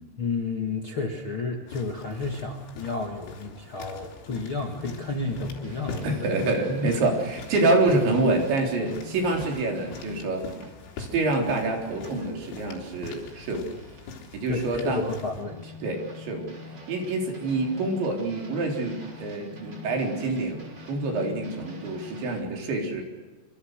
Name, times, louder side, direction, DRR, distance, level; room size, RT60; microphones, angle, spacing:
voice 1, 0.2-6.3 14.5-15.7, left 3 dB, 60° left, 1 dB, 1.3 m, -31 dB
sound 1, 1.7-15.5, left 5 dB, 90° left, 6.3 m, -43 dB
sound 2, 4.7-14.2 14.6-22.4, left 2 dB, 25° right, 3.1 m, -45 dB
voice 2, 6.0-10.5 11.0-13.7 14.3-15.0 15.8-16.5 16.9-23.0, right 2 dB, 60° right, 1 dB, 5.9 m, -26 dB
26.5 x 26.0 x 6.6 m, 1.3 s
omnidirectional pair, 5.9 m